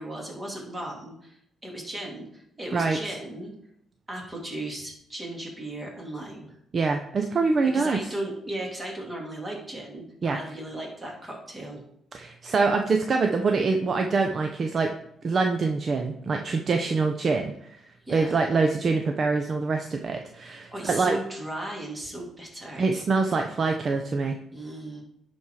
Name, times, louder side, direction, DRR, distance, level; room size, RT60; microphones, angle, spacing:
voice 1, 0.0-3.5 4.1-6.6 7.7-11.8 18.0-18.3 20.7-22.9 24.5-25.0, right 1 dB, 20° right, -1 dB, 3.0 m, -36 dB
voice 2, 6.7-8.0 10.2-10.4 12.1-14.9 15.2-17.8 18.1-21.2 22.8-24.4, right 4 dB, 45° right, 5 dB, 0.8 m, -25 dB
10.5 x 4.4 x 4.8 m, 0.74 s
cardioid pair, 90°, 0 cm